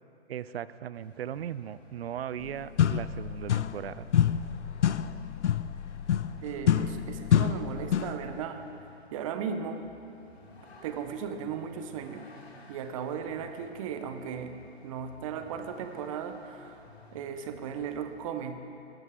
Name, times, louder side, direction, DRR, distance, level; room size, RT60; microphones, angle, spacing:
voice 1, 0.3-4.1, right 10 dB, 60° right, 17 dB, 0.5 m, -38 dB
Vehicle, 0.9-18.2, left 3 dB, 65° left, 2.5 m, -55 dB
sound 1, 2.4-2.5 2.8-3.9 4.1-8.3, left 9 dB, 85° left, 0.5 m, -27 dB
voice 2, 6.4-8.7 9.1-9.9 10.8-12.3 12.7-14.5 14.8-16.8 17.1-18.6, right 7 dB, 30° right, 7 dB, 0.7 m, -36 dB
13.0 x 10.5 x 4.7 m, 2.6 s
hypercardioid pair, 140°, 34 cm